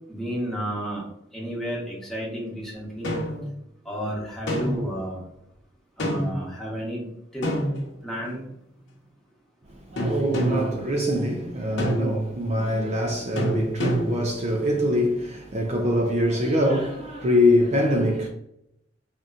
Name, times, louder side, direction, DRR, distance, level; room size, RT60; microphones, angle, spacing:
voice 1, 0.1-1.0 1.3-3.1 3.8-5.2 6.0-7.0 7.3-7.5 8.0-8.4, equal, ahead, 1.0 m, -31 dB
sound 1, 3.0-3.5 4.5-5.0 6.0-6.4 7.4-8.3 10.0-10.8 11.8-12.3 13.4-14.3, equal, 85° left, 0.9 m, -27 dB
voice 2, 9.8-18.3, left 1 dB, 40° right, 0.5 m, -24 dB
3.6 x 2.7 x 2.4 m
head